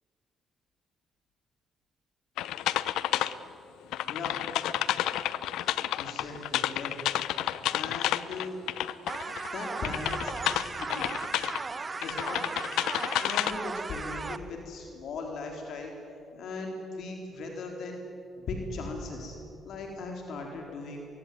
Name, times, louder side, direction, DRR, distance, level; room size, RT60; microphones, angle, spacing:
sound 1, 2.4-3.3 3.9-9.5 9.8-11.6 12.0-13.5, left 13 dB, 90° left, 0.8 m, -30 dB
voice 1, 4.1-4.4 6.0-7.0 7.7-8.6 9.5-11.1 12.0-12.5 12.8-15.9 16.3-18.0 18.4-19.4 19.6-21.1, left 3 dB, 70° left, 2 dB, 4.1 m, -38 dB
sound 2, 9.1-14.4, right 4 dB, 30° right, 1.3 m, -36 dB
24.0 x 23.0 x 9.5 m, 2.7 s
cardioid pair, 90°, 0 cm